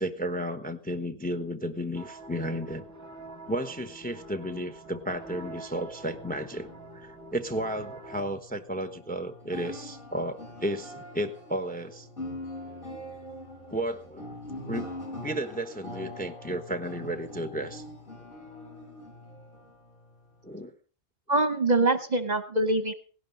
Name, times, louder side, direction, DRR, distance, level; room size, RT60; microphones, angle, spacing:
voice 1, 0.0-2.8 3.5-6.7 6.9-12.1 13.7-14.4 14.7-14.9 15.2-17.8 20.4-20.7, right 1 dB, 10° left, 11 dB, 0.9 m, -33 dB
sound 1, 1.9-8.3, right 1 dB, 15° right, 1.2 m, -45 dB
sound 2, 5.9-20.6, left 1 dB, 40° left, 4.7 m, -43 dB
voice 2, 21.3-22.9, right 2 dB, 35° right, 11 dB, 1.0 m, -24 dB
17.5 x 11.5 x 5.3 m, 0.40 s
omnidirectional pair, 1.4 m